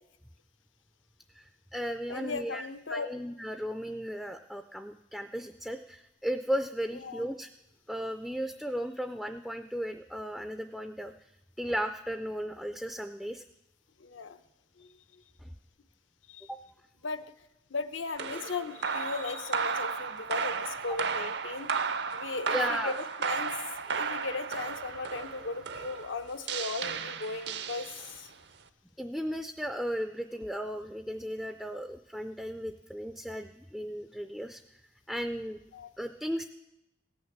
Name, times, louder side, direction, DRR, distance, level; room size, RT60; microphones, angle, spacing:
voice 1, 1.3-7.5 7.9-11.3 11.6-13.4 15.4-15.5 16.5-16.6 22.5-23.0 29.0-34.6 35.1-35.6 36.0-36.4, equal, ahead, 8 dB, 0.3 m, -35 dB
voice 2, 2.1-3.1 7.0-7.2 14.0-14.4 14.8-15.2 16.3-16.5 17.0-17.2 17.7-21.7 22.1-23.5 23.8-28.3 35.7-35.9, left 4 dB, 80° left, 9 dB, 0.8 m, -37 dB
sound 1, 18.2-28.3, right 5 dB, 60° right, 0.6 m, -34 dB
17.0 x 6.3 x 7.3 m, 0.90 s
head